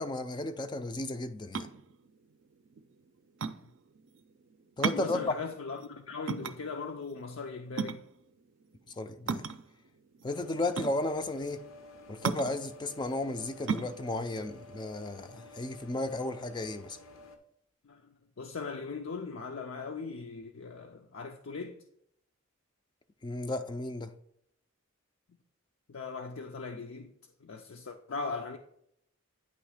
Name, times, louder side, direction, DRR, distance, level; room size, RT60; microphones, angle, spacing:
voice 1, 0.0-1.7 4.8-5.3 8.9-9.5 10.2-11.6 12.1-17.0 23.2-24.1, left 2 dB, 20° left, 0.3 m, -34 dB
sound 1, 1.4-15.7, right 5 dB, 65° right, 0.4 m, -37 dB
voice 2, 4.9-8.0 17.8-21.8 25.9-27.1 27.4-28.6, left 4 dB, 70° left, 0.5 m, -39 dB
sound 2, 10.3-17.4, left 2 dB, 90° left, 1.0 m, -52 dB
9.2 x 3.1 x 4.9 m
head